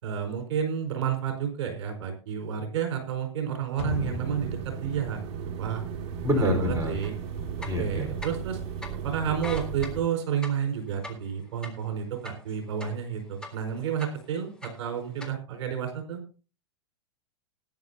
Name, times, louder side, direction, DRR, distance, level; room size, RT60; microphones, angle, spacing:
voice 1, 0.0-5.2 5.6-5.8 6.3-7.1 7.6-8.6 9.0-16.2, right 8 dB, 60° right, 4 dB, 4.9 m, -31 dB
sound 1, 3.8-6.6 6.9-7.0, left 6 dB, 40° left, 3.5 m, -38 dB
sound 2, 3.9-10.0, right 7 dB, 45° right, 2.0 m, -36 dB
voice 2, 6.2-6.9 7.7-8.1, left 1 dB, 20° right, 2 dB, 4.5 m, -26 dB
sound 3, 7.0-7.1 7.5-8.5 8.8-8.9 9.3-13.1 13.4-14.3 14.6-15.3, left 2 dB, 5° left, 3.6 m, -41 dB
20.0 x 10.5 x 2.8 m, 0.36 s
hypercardioid pair, 105°, 16 cm